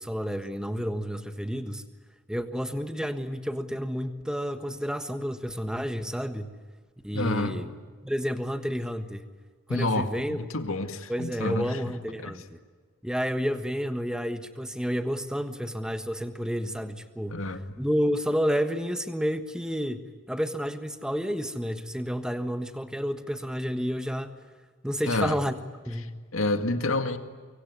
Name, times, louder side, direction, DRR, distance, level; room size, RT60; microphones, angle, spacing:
voice 1, 0.0-1.8 2.3-6.5 7.0-7.7 8.0-9.3 9.7-10.4 11.1-12.6 13.0-17.5 17.8-24.3 24.8-25.5 25.9-26.2, equal, 5° right, 8 dB, 1.4 m, -30 dB
voice 2, 7.1-7.6 9.7-10.1 10.4-11.8 12.2-12.3 17.3-17.7 25.0-25.4 26.3-27.2, left 2 dB, 85° left, 8 dB, 2.0 m, -28 dB
24.5 x 24.0 x 9.4 m, 1.5 s
head